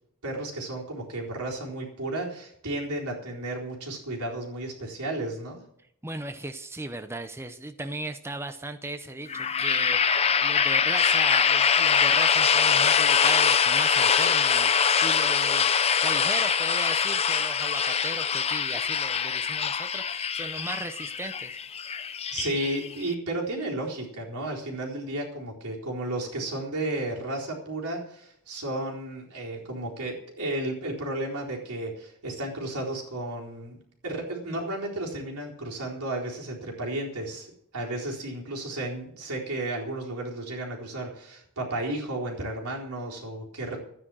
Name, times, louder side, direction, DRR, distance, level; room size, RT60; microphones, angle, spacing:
voice 1, 0.2-5.6 22.3-33.8 34.0-43.8, right 1 dB, 90° right, -2 dB, 4.1 m, -33 dB
voice 2, 6.0-21.6, right 2 dB, 10° right, 8 dB, 0.7 m, -37 dB
sound 1, 9.3-23.1, left 7 dB, 30° left, 0.6 m, -23 dB
13.0 x 9.8 x 6.3 m, 0.72 s
head